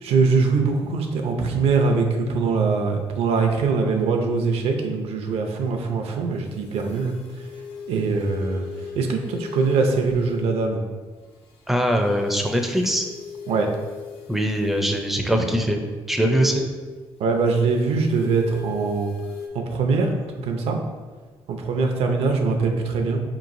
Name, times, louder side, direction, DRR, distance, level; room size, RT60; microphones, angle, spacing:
voice 1, 0.0-7.2 7.9-8.7 8.9-10.8 13.5-13.7 17.2-19.1 19.5-20.8 21.5-23.2, right 4 dB, 75° right, 3 dB, 0.6 m, -22 dB
sound 1, 6.5-10.7 11.3-15.0 17.5-19.5, left 6 dB, 80° left, 0.6 m, -38 dB
voice 2, 11.7-13.0 14.3-15.8 16.1-16.6, equal, ahead, 3 dB, 0.4 m, -22 dB
5.1 x 3.0 x 2.6 m, 1.4 s
cardioid pair, 130°, 10 cm